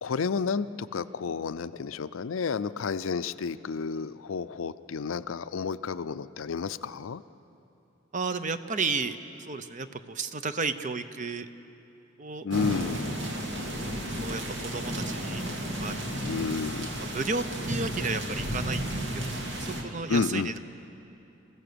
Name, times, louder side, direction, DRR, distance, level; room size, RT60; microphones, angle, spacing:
voice 1, 0.0-7.2 12.4-13.1 16.2-16.9 20.1-20.5, left 5 dB, 85° left, 14 dB, 0.5 m, -31 dB
voice 2, 8.1-9.2 9.5-11.5 12.2-12.5 14.2-15.4 15.8-16.0 17.0-20.6, right 4 dB, 40° right, 11 dB, 0.7 m, -33 dB
sound 1, 12.5-19.8, right 1 dB, 70° right, 2.4 m, -33 dB
27.0 x 15.5 x 6.8 m, 2.8 s
head